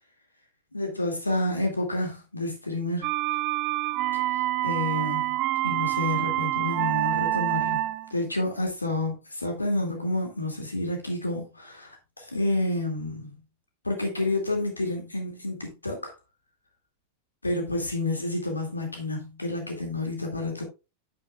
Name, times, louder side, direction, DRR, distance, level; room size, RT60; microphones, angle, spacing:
voice 1, 0.7-3.1 4.1-5.4 5.6-13.3 13.8-16.1 17.4-20.6, left 2 dB, 80° left, 2.3 m, -29 dB
sound 1, 3.0-8.1, right 17 dB, 40° right, 0.4 m, -27 dB
8.7 x 8.5 x 2.4 m
figure-of-eight pair, 90°, 0 cm